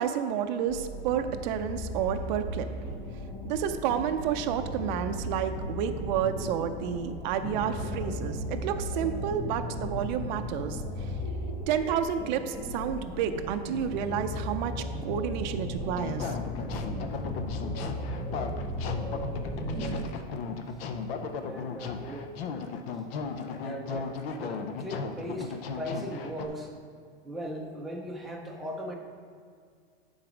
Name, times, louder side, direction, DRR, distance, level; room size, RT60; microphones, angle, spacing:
voice 1, 0.0-3.0 3.4-11.1 11.7-16.4, right 8 dB, 45° right, 7 dB, 0.5 m, -30 dB
sound 1, 0.7-20.0, equal, 15° left, 0.9 m, -36 dB
sound 2, 15.9-26.5, left 5 dB, 65° left, 0.8 m, -36 dB
voice 2, 19.3-20.2 21.5-22.3 23.6-26.7 27.2-29.0, equal, ahead, -2 dB, 0.5 m, -39 dB
9.9 x 4.0 x 5.0 m, 2.1 s
supercardioid pair, 160°, 31 cm